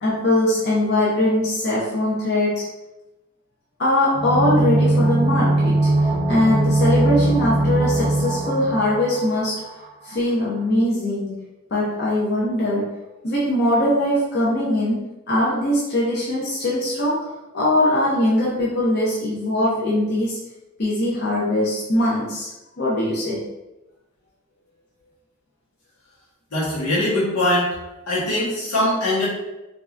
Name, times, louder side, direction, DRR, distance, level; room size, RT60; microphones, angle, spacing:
voice 1, 0.0-2.6 3.8-5.9 6.3-9.6 10.0-11.4 11.7-12.9 13.2-17.3 17.5-20.4 20.8-22.5 22.8-23.4, left 1 dB, 45° left, -6 dB, 0.6 m, -21 dB
sound 1, 4.1-9.8 10.1-10.2, right 2 dB, 20° right, 0.7 m, -20 dB
voice 2, 26.5-27.7 28.1-29.3, left 1 dB, 85° left, -6 dB, 1.2 m, -21 dB
3.1 x 2.6 x 2.4 m, 0.97 s
head